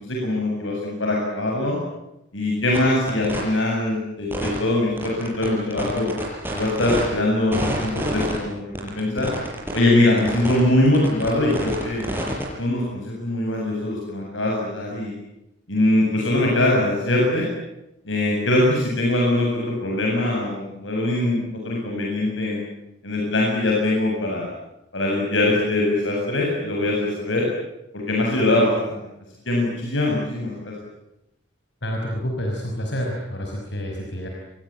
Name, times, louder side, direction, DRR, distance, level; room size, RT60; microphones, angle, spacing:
voice 1, 0.1-1.8 2.3-6.1 6.5-9.3 9.7-12.0 12.6-15.1 15.7-17.5 18.0-22.6 23.0-24.5 24.9-27.5 27.9-29.0 29.5-30.7, left 1 dB, 90° left, -2 dB, 7.7 m, -22 dB
sound 1, 2.7-2.8 3.1-3.4 4.3-4.6 5.0-7.1 7.5-8.4 8.7-9.8 10.2-10.6 10.9-12.4, right 1 dB, 10° right, 6.7 m, -27 dB
voice 2, 31.8-34.3, equal, 65° left, 1 dB, 5.5 m, -28 dB
28.5 x 23.0 x 8.9 m, 0.87 s
head